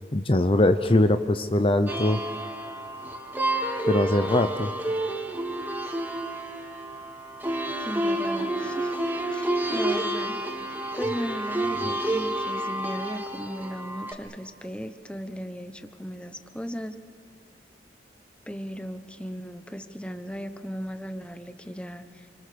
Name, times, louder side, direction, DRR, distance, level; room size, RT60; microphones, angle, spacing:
voice 1, 0.1-2.2 3.8-4.7, left 1 dB, 30° left, 8 dB, 0.7 m, -22 dB
sound 1, 1.9-14.1, right 1 dB, 10° right, 2.1 m, -29 dB
voice 2, 7.8-8.9 9.3-10.4 10.9-17.0 18.5-22.3, equal, 5° left, 9 dB, 1.0 m, -36 dB
29.0 x 25.0 x 6.9 m, 2.1 s
head